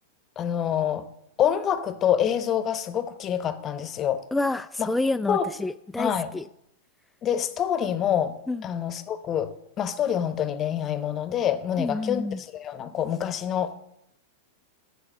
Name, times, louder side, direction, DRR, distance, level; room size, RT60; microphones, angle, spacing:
voice 1, 0.4-1.1 1.4-4.2 4.8-4.9 5.3-5.5 6.0-6.3 7.2-8.4 8.6-13.7, left 9 dB, 30° left, 13 dB, 0.9 m, -26 dB
voice 2, 4.3-6.4 8.5-8.6 11.8-12.4, left 2 dB, 5° left, 9 dB, 0.3 m, -28 dB
8.9 x 6.9 x 7.1 m, 0.79 s
figure-of-eight pair, 95°, 0 cm